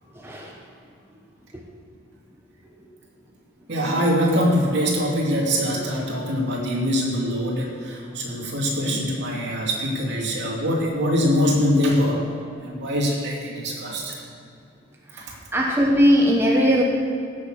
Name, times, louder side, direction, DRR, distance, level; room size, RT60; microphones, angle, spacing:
voice 1, 0.1-0.6 1.5-1.7 15.1-16.8, equal, 10° right, -1 dB, 0.9 m, -20 dB
voice 2, 3.7-12.3 12.6-14.2, equal, 60° right, -2 dB, 2.8 m, -23 dB
16.5 x 7.1 x 6.4 m, 2.6 s
head